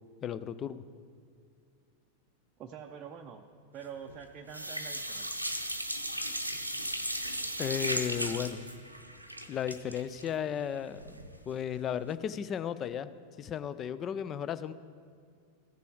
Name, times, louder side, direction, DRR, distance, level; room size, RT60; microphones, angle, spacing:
voice 1, 0.2-0.8 7.6-8.7 9.5-13.1 13.4-14.7, left 8 dB, 30° left, 14 dB, 0.4 m, -35 dB
voice 2, 2.6-3.5 3.7-5.3, right 7 dB, 30° right, 2 dB, 0.5 m, -45 dB
sound 1, 3.8-4.2 4.5-11.4 11.7-11.8 12.1-12.2, right 1 dB, 90° right, 0.7 m, -36 dB
15.0 x 6.8 x 4.7 m, 2.2 s
figure-of-eight pair, 90°, 0 cm